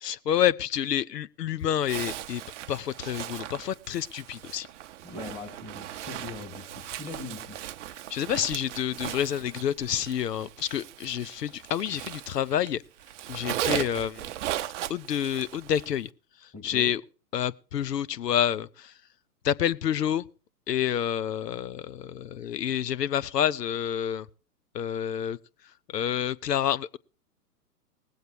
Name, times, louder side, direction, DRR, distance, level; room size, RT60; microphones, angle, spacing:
voice 1, 0.0-2.4 2.7-4.7 8.1-12.8 13.3-14.3 14.9-16.1 16.6-17.0 17.3-18.9 19.4-20.3 20.7-24.3 24.7-25.4 25.9-27.0, left 10 dB, 85° left, 0.7 m, -28 dB
Zipper (clothing), 1.8-12.7 13.0-16.0, right 12 dB, 50° right, 0.6 m, -37 dB
voice 2, 5.0-7.6 16.5-16.9, left 3 dB, 15° left, 3.0 m, -41 dB
19.5 x 7.9 x 4.6 m
hypercardioid pair, 125°, 48 cm